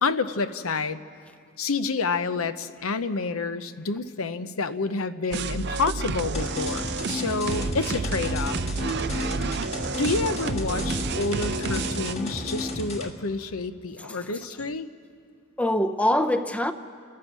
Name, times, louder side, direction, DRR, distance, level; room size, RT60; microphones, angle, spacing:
voice 1, 0.0-1.0 1.6-8.6 10.0-14.9, left 4 dB, 80° left, 0.8 m, -28 dB
sound 1, 5.3-12.1, right 4 dB, 55° right, 0.5 m, -30 dB
sound 2, 6.3-13.1, left 2 dB, 30° left, 1.7 m, -33 dB
voice 2, 14.0-14.4 15.6-16.7, left 1 dB, 5° left, 0.6 m, -25 dB
29.5 x 13.5 x 7.4 m
head